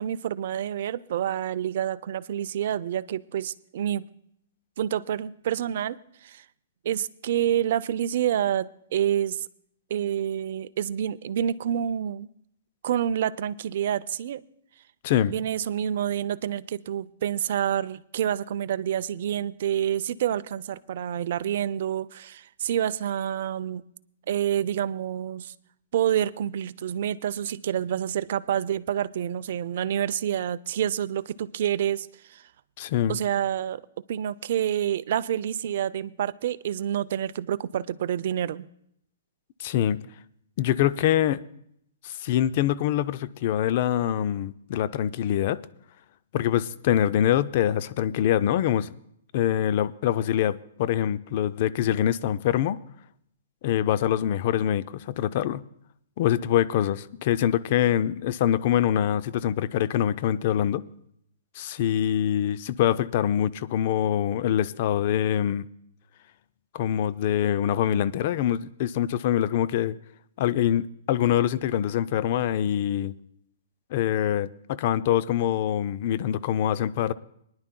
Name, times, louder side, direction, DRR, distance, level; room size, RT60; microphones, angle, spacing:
voice 1, 0.0-4.0 4.8-6.4 6.8-9.5 9.9-12.3 12.8-14.4 15.3-23.8 24.3-25.5 25.9-32.4 33.1-33.8 34.1-38.7, right 10 dB, 60° right, 14 dB, 0.4 m, -28 dB
voice 2, 32.8-33.2 39.6-40.0 40.6-41.4 42.0-45.6 46.3-48.9 49.3-52.8 53.6-55.6 56.2-60.8 61.6-65.7 66.7-70.0 70.4-73.1 73.9-77.1, left 11 dB, 50° left, 15 dB, 0.4 m, -24 dB
23.5 x 10.5 x 2.2 m, 0.72 s
hypercardioid pair, 140°, 0 cm